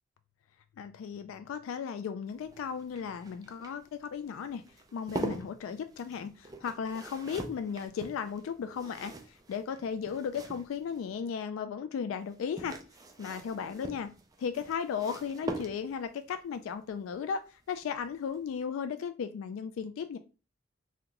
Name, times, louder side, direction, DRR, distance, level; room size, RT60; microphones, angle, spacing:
voice 1, 0.8-4.6 4.9-12.8 13.2-14.1 14.4-20.2, left 6 dB, 85° left, 0.3 m, -36 dB
sound 1, 2.3-11.1 12.2-16.2 17.8-18.1 18.4-18.5, right 2 dB, 20° right, 0.3 m, -43 dB
2.9 x 2.2 x 3.7 m
head